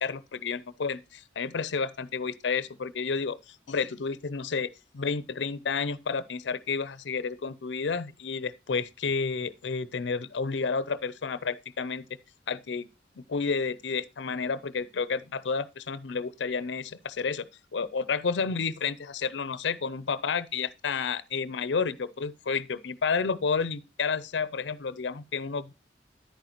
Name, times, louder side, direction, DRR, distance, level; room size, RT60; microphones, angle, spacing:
voice 1, 0.0-4.7 4.9-12.0 12.5-12.9 13.3-17.5 17.7-25.7, left 5 dB, 90° left, 0.5 m, -31 dB
10.5 x 9.1 x 2.9 m
head